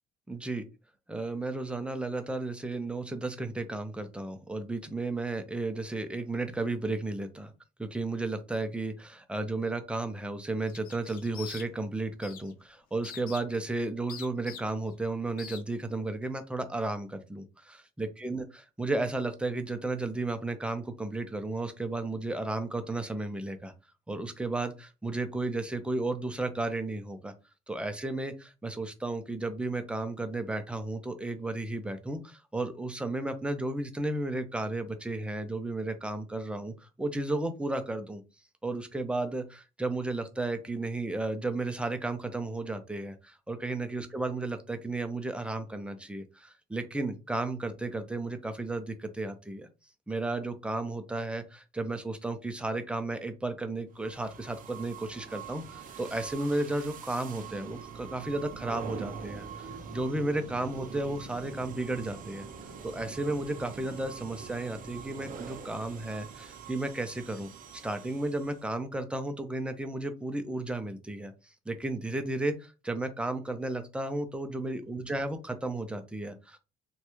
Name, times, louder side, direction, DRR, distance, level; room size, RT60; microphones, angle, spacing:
voice 1, 0.3-0.7 1.1-7.5 7.8-23.7 24.1-27.3 27.7-38.2 38.6-49.7 50.1-62.5 62.8-67.5 67.8-71.3 71.7-76.6, right 2 dB, 5° right, 8 dB, 0.5 m, -33 dB
sound 1, 10.7-11.9 12.2-12.5 13.0-13.6 14.1-14.9 15.4-15.6, left 7 dB, 60° left, 0.6 m, -44 dB
sound 2, 53.9-68.7, right 6 dB, 50° right, 0.6 m, -44 dB
3.1 x 2.3 x 3.0 m, 0.29 s
cardioid pair, 110°, 17 cm